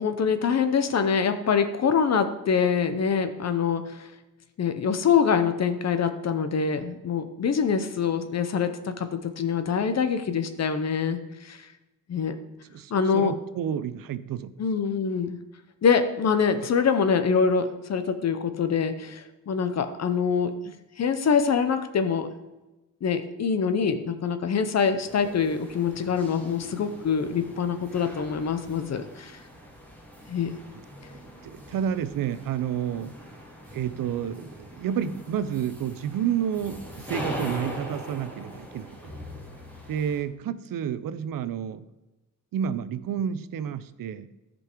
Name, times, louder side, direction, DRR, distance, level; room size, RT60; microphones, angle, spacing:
voice 1, 0.0-3.8 4.6-11.2 11.4-11.6 12.1-12.3 12.9-13.3 14.6-15.3 15.8-20.5 21.0-22.3 23.0-29.3 30.3-30.5, left 6 dB, 50° left, 9 dB, 0.8 m, -24 dB
voice 2, 12.7-14.5 31.4-33.2 33.7-39.0 39.9-41.8 42.5-44.3, right 9 dB, 85° right, 14 dB, 0.6 m, -30 dB
sound 1, 25.0-40.2, equal, 5° left, 2.1 m, -41 dB
14.0 x 5.4 x 4.5 m, 1.0 s
wide cardioid pair, 150°, 33 cm